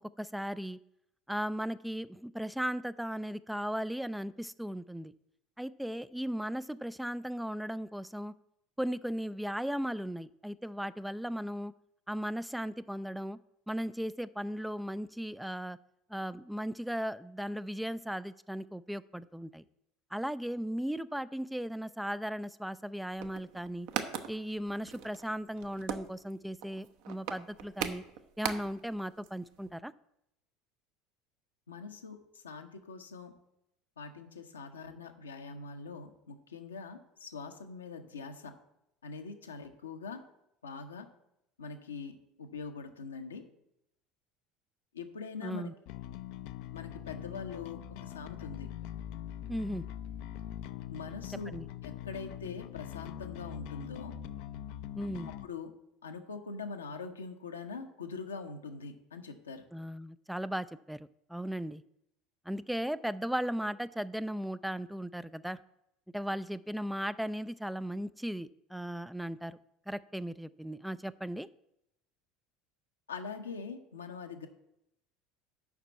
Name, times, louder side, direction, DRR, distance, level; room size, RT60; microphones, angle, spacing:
voice 1, 0.2-0.8 1.3-5.1 5.6-8.3 8.8-11.7 12.1-13.4 13.7-15.8 16.1-19.6 20.1-23.9 24.3-28.0 28.4-29.9 45.4-45.7 49.5-49.8 51.5-51.7 55.0-55.3 59.7-61.8 62.5-65.6 66.1-69.6 69.9-71.5, equal, 5° right, 15 dB, 0.3 m, -36 dB
sound 1, 23.1-29.0 29.2-29.3 29.5-29.7, right 9 dB, 60° right, 0.8 m, -39 dB
voice 2, 31.7-33.3 34.0-38.5 39.0-40.2 40.6-41.1 41.6-43.4 44.9-45.7 46.7-48.7 50.9-51.6 51.8-54.1 55.4-55.7 56.0-59.6 73.1-74.5, left 5 dB, 80° left, 5 dB, 1.0 m, -43 dB
Bass guitar, 45.9-55.5, left 10 dB, 60° left, 0.5 m, -43 dB
7.2 x 5.9 x 7.3 m, 0.82 s
figure-of-eight pair, 70°, 0 cm